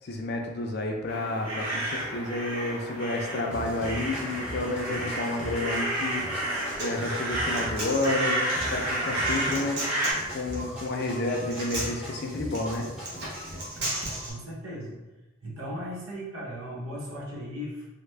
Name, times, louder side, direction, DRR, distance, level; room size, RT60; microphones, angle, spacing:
voice 1, 0.0-6.5 6.8-9.8 10.3-12.9, left 2 dB, 50° left, 2 dB, 0.4 m, -30 dB
sound 1, 1.1-10.1, right 1 dB, 30° right, 1.0 m, -31 dB
sound 2, 3.5-13.6, right 1 dB, 5° right, 0.7 m, -41 dB
Human voice, 6.3-14.3, right 1 dB, 50° right, 0.9 m, -36 dB
voice 2, 13.8-14.9 15.4-17.9, equal, 85° right, -4 dB, 0.9 m, -37 dB
3.3 x 2.1 x 3.2 m, 1.1 s
head